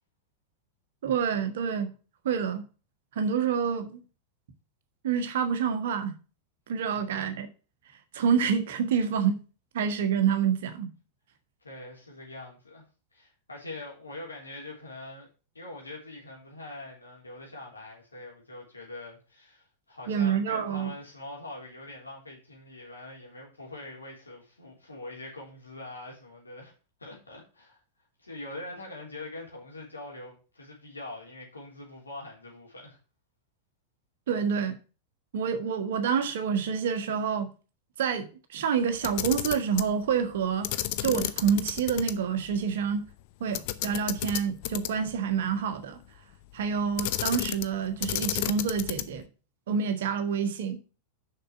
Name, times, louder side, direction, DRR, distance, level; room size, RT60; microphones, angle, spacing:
voice 1, 1.0-1.9 2.2-2.6 3.1-4.0 5.0-6.1 6.7-7.5 8.1-9.4 9.7-10.9 20.1-20.9 34.3-34.8 35.3-37.5 38.0-40.7 41.0-43.0 43.4-46.0 46.5-49.2 49.7-50.8, right 7 dB, 60° right, 1.4 m, -27 dB
voice 2, 11.6-12.8 13.1-15.3 15.5-26.7 27.0-27.8 28.2-33.0, left 2 dB, 80° left, 3.5 m, -43 dB
Camera, 38.9-39.9 40.6-42.1 42.5-42.6 43.5-45.1 47.0-47.7 48.0-49.2, left 15 dB, 50° left, 0.6 m, -31 dB
6.7 x 5.9 x 6.0 m
figure-of-eight pair, 90°, 0 cm